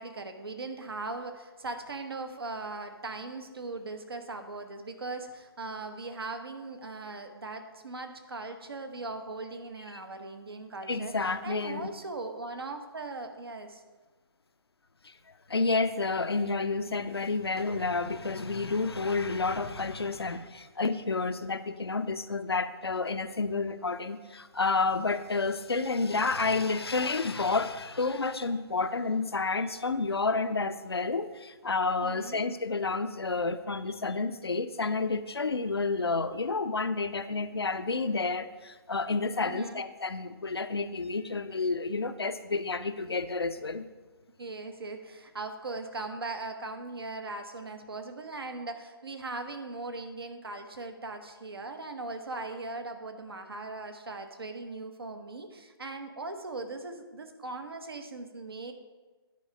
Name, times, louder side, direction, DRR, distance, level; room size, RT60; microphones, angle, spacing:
voice 1, 0.0-13.8 32.0-32.4 39.4-39.8 43.0-43.1 44.4-58.7, right 3 dB, 70° right, 7 dB, 1.0 m, -39 dB
voice 2, 10.9-11.9 15.0-15.1 15.5-43.9, left 3 dB, 85° left, 11 dB, 0.5 m, -30 dB
10.5 x 4.6 x 5.1 m, 1.3 s
figure-of-eight pair, 135°, 13 cm